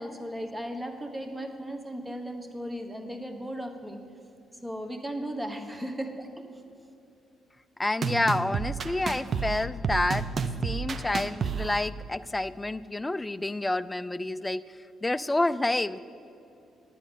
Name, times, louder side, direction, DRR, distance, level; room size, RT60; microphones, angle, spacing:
voice 1, 0.0-4.0 4.6-6.3, equal, 15° right, 6 dB, 1.2 m, -36 dB
voice 2, 7.8-10.3 10.6-14.7 15.0-16.0, left 2 dB, 15° left, 15 dB, 0.3 m, -28 dB
sound 1, 8.0-11.9, right 5 dB, 50° right, 0.6 m, -31 dB
9.8 x 9.3 x 5.3 m, 2.7 s
supercardioid pair, 65°, 0 cm